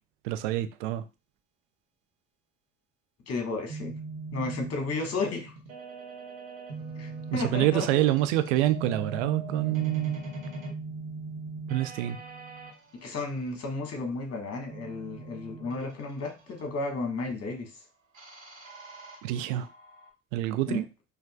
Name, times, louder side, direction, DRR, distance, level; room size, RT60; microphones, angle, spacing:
voice 1, 0.2-1.0 7.3-10.2 11.7-12.2 19.2-19.7 20.3-20.9, right 14 dB, 65° right, 0.5 m, -26 dB
voice 2, 3.3-4.0 4.3-5.5 7.0-8.2 13.0-17.7 20.7-20.8, left 3 dB, 40° left, 1.4 m, -33 dB
sound 1, 3.7-12.7 14.7-16.6 18.1-20.1, right 2 dB, 85° right, 1.0 m, -41 dB
5.1 x 2.6 x 2.2 m
figure-of-eight pair, 50°, 39 cm